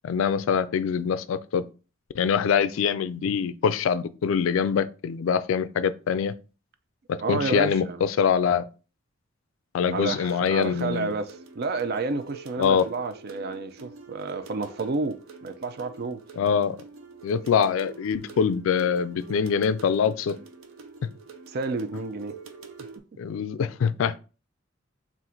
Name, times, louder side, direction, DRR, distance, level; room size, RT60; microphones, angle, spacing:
voice 1, 0.0-1.7 2.1-6.4 7.1-8.7 9.7-11.1 12.6-12.9 16.4-16.8 17.2-20.4 21.0-21.1 23.2-24.2, left 7 dB, 75° left, 0.3 m, -24 dB
voice 2, 7.2-8.0 9.9-16.2 21.5-22.3, right 3 dB, 50° right, 0.4 m, -30 dB
sound 1, 10.2-23.0, right 4 dB, 90° right, 0.6 m, -46 dB
3.8 x 2.5 x 4.2 m
head